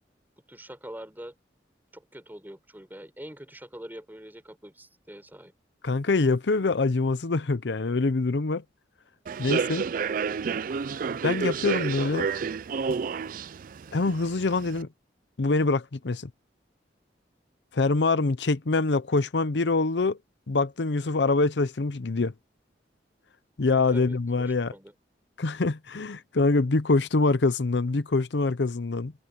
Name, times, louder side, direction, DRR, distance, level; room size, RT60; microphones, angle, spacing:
voice 1, 0.5-1.3 1.9-5.5 23.9-24.9, right 1 dB, 10° right, 4.8 m, -44 dB
voice 2, 5.8-8.6 9.4-9.8 11.2-12.3 12.9-13.0 13.9-14.9 15.4-16.3 17.7-20.2 20.5-22.3 23.6-24.7 25.4-29.1, left 3 dB, 75° left, 0.7 m, -25 dB
Human voice / Subway metro underground, 9.3-14.8, right 5 dB, 50° right, 0.4 m, -30 dB
head